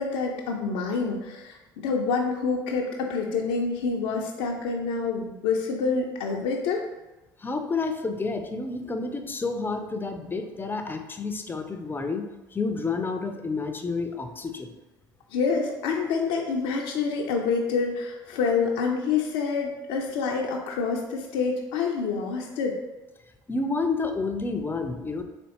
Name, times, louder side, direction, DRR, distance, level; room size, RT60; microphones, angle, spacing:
voice 1, 0.0-1.6 1.8-6.8 15.3-22.8, left 5 dB, 70° left, 0 dB, 0.5 m, -27 dB
voice 2, 7.4-12.2 12.5-14.7 23.5-25.2, left 3 dB, 20° left, 6 dB, 0.5 m, -30 dB
4.2 x 3.0 x 2.9 m, 1.1 s
hypercardioid pair, 65°, 11 cm